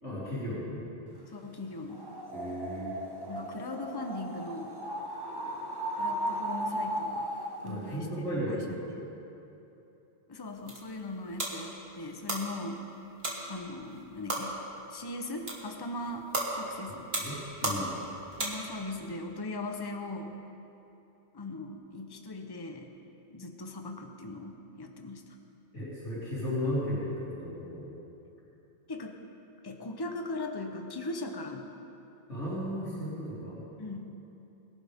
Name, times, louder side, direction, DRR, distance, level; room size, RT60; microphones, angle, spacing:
voice 1, 0.0-0.8 2.3-2.9 7.6-8.9 17.2-17.9 25.7-27.8 32.3-33.6, equal, 90° left, -10 dB, 4.0 m, -35 dB
voice 2, 1.3-2.0 3.3-4.8 6.0-7.3 7.6-9.1 10.3-12.8 13.5-14.6 14.9-16.3 16.5-17.1 18.4-20.4 21.3-22.9 23.3-25.4 28.9-29.2 29.6-31.7 33.8-34.2, left 2 dB, 25° left, 4 dB, 0.9 m, -39 dB
sound 1, 1.9-7.7, right 1 dB, 20° right, 1.1 m, -36 dB
sound 2, 10.4-19.0, right 2 dB, 60° right, 2.1 m, -37 dB
21.5 x 11.5 x 3.6 m, 2.9 s
omnidirectional pair, 1.2 m